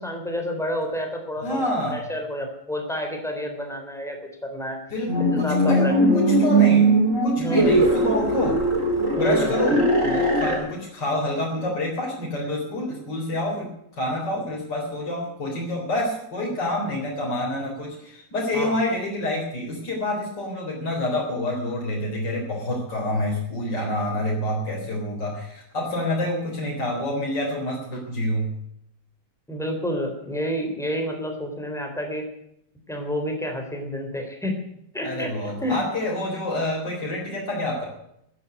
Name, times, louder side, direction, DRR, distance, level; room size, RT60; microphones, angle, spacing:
voice 1, 0.0-1.6 1.9-4.8 5.3-5.9 7.3-7.7 9.1-9.5 18.5-18.8 29.5-32.2 32.9-34.6 34.9-35.3 35.6-35.8, equal, ahead, 3 dB, 3.5 m, -29 dB
voice 2, 1.4-2.0 4.9-6.9 7.2-8.6 9.2-28.5 35.0-37.9, left 1 dB, 85° left, -3 dB, 4.6 m, -27 dB
sound 1, 5.1-10.6, right 2 dB, 45° right, 4.8 m, -20 dB
14.0 x 10.0 x 9.2 m, 0.76 s
omnidirectional pair, 1.9 m